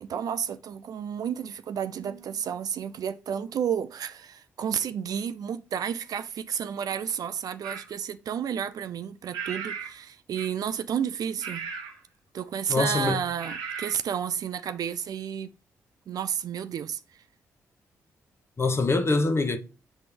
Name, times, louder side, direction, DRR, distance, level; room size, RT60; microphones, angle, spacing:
voice 1, 0.0-11.6 12.3-15.5 16.1-17.2, right 8 dB, 60° right, 0.4 m, -31 dB
sound 1, 7.6-7.9 9.3-10.0 10.3-10.7 11.4-12.0 13.4-14.0, right 6 dB, 85° right, 0.8 m, -36 dB
voice 2, 12.7-13.2 18.6-19.6, left 3 dB, 35° left, 1.0 m, -24 dB
7.0 x 4.2 x 3.3 m
hypercardioid pair, 40°, 7 cm